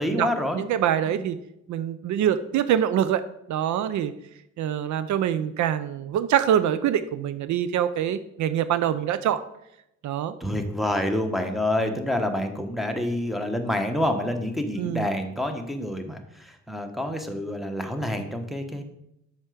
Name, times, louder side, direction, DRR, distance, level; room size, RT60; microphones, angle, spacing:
voice 1, 0.0-0.6 1.1-1.2 10.4-18.8, left 1 dB, ahead, 5 dB, 1.2 m, -27 dB
voice 2, 0.5-1.4 1.7-3.2 3.5-4.1 4.6-9.4 10.0-10.3 14.8-15.1, right 10 dB, 70° right, 13 dB, 0.5 m, -24 dB
7.3 x 5.8 x 5.0 m, 0.81 s
cardioid pair, 90°, 30 cm